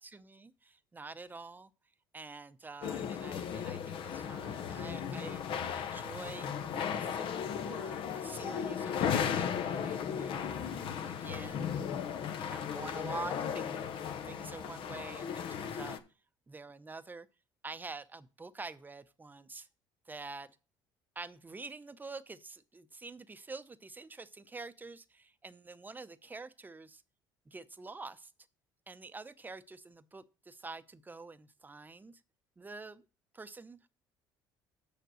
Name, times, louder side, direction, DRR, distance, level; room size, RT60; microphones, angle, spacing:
voice 1, 0.0-1.7 2.1-5.5 5.7-6.5 6.9-10.6 11.1-11.7 12.3-14.0 14.2-16.0 16.5-17.3 17.6-19.7 20.1-20.5 21.2-27.0 27.5-28.3 28.9-32.2 32.6-33.1 33.3-33.9, right 3 dB, 20° right, 0.7 m, -47 dB
sound 1, 2.8-16.0, left 8 dB, 60° left, 0.9 m, -36 dB
6.7 x 5.1 x 6.3 m
supercardioid pair, 75°, 10 cm